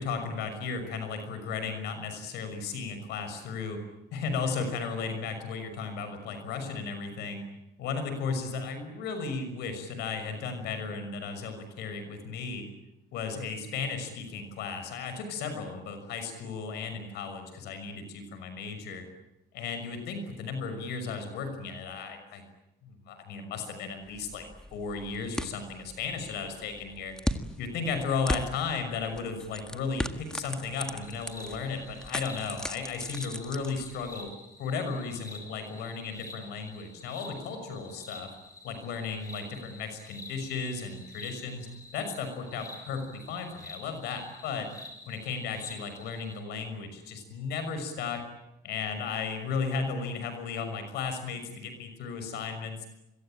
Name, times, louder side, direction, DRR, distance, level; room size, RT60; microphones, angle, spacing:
voice 1, 0.0-3.8 4.1-7.5 7.8-12.6 13.1-19.0 19.5-22.4 22.8-24.4 24.7-27.1 27.6-34.3 34.6-38.3 38.6-41.7 41.9-44.7 45.1-48.2 48.6-52.9, left 5 dB, 80° left, 8 dB, 6.1 m, -35 dB
sound 1, 24.0-34.3, equal, 5° left, 1.7 m, -38 dB
sound 2, 31.0-46.4, left 2 dB, 20° left, 7.4 m, -49 dB
26.0 x 23.0 x 9.0 m, 0.92 s
cardioid pair, 110°, 17 cm